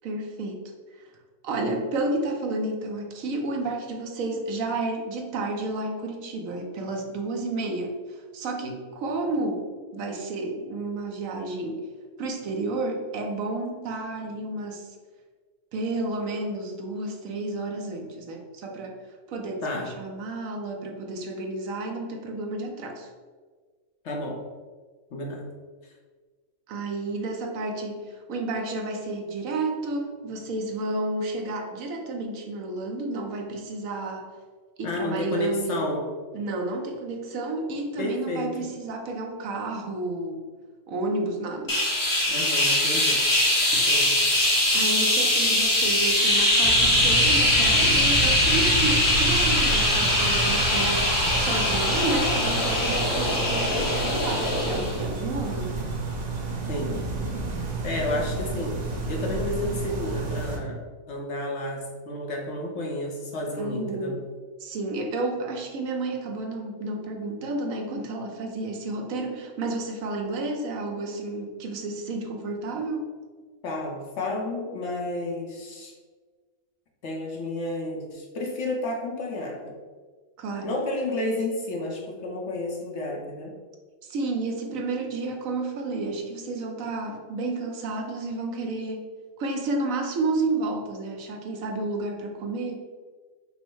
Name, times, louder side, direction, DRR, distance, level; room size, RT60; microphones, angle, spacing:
voice 1, 0.0-0.6 0.9-1.1 1.4-11.9 12.2-15.0 15.7-23.1 26.7-34.3 34.8-35.9 36.3-40.4 40.9-41.8 43.7-43.8 44.7-55.8 63.6-64.2 64.6-73.1 80.4-80.8 84.0-89.0 89.4-92.8, right 2 dB, 75° right, 2 dB, 1.1 m, -31 dB
voice 2, 24.0-24.4 25.1-25.4 34.8-36.0 38.0-38.5 42.3-43.2 43.7-44.1 56.7-57.0 57.8-60.8 61.1-64.1 73.6-75.9 77.0-79.8 80.6-83.5, left 2 dB, 60° left, 0 dB, 1.0 m, -31 dB
sound 1, 41.7-55.0, left 1 dB, 20° left, 0.6 m, -22 dB
sound 2, 46.6-60.6, right 2 dB, 40° right, 0.6 m, -30 dB
5.3 x 2.0 x 4.6 m, 1.4 s
omnidirectional pair, 1.5 m